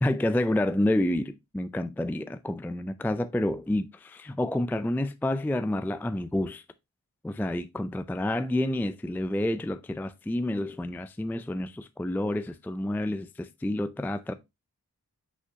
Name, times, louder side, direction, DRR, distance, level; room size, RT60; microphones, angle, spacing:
voice 1, 0.0-6.6 7.2-14.3, left 1 dB, 5° left, 0.4 m, -29 dB
6.0 x 5.7 x 2.8 m
cardioid pair, 45°, 38 cm